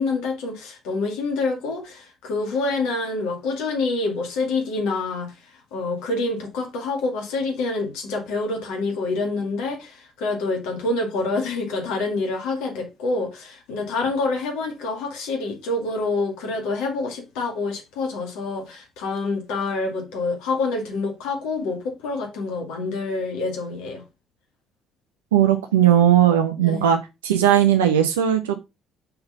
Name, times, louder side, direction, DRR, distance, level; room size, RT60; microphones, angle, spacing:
voice 1, 0.0-5.4 5.7-24.0 26.6-26.9, left 3 dB, 65° left, 1.9 m, -27 dB
voice 2, 25.3-27.0 27.2-28.5, right 10 dB, 75° right, 0.7 m, -17 dB
5.6 x 4.0 x 5.4 m
figure-of-eight pair, 50°, 0 cm